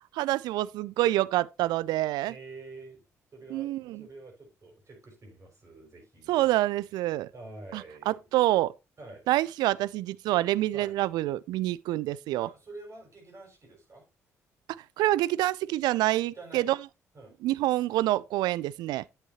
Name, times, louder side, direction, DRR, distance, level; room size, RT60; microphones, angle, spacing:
voice 1, 0.1-2.3 3.5-4.0 6.3-7.3 7.7-8.7 9.3-12.5 15.0-16.8 17.4-19.0, right 16 dB, 60° right, 0.4 m, -27 dB
voice 2, 2.2-3.0 3.3-3.7 4.0-6.5 7.3-8.3 9.0-9.2 10.7-11.0 12.4-14.0 16.3-16.7 17.1-17.4, right 3 dB, 40° right, 5.5 m, -47 dB
9.9 x 8.2 x 2.8 m
figure-of-eight pair, 45°, 8 cm